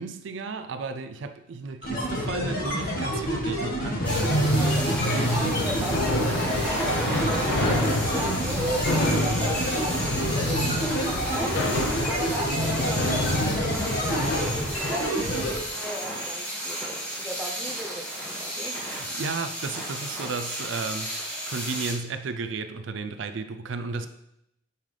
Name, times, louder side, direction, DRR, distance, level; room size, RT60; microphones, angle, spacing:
voice 1, 0.0-4.6 16.6-16.7 18.9-24.1, right 4 dB, 70° right, 9 dB, 0.4 m, -34 dB
sound 1, 1.8-15.6, equal, 45° left, 1.6 m, -29 dB
sound 2, 4.0-14.5, left 1 dB, 75° left, 0.8 m, -28 dB
sound 3, 4.0-21.9, equal, 5° left, 1.8 m, -33 dB
voice 2, 4.6-11.6 12.0-19.1, right 1 dB, 10° right, 2 dB, 0.7 m, -36 dB
7.2 x 5.6 x 3.3 m, 0.82 s
head